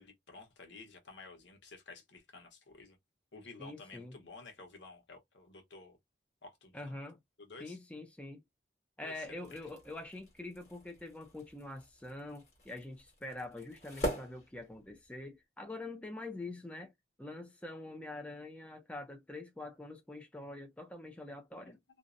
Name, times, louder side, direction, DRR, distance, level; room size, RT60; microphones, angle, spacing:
voice 1, 0.0-3.0 3.3-6.0 6.4-6.9 7.4-7.8 9.0-9.7 21.6-21.8, left 3 dB, 85° left, 1.0 m, -52 dB
voice 2, 3.6-4.2 6.7-7.2 7.6-8.4 9.0-16.9 17.2-21.8, left 2 dB, 5° left, 0.4 m, -45 dB
sound 1, 9.2-15.2, equal, 40° left, 1.2 m, -44 dB
2.6 x 2.0 x 2.4 m
head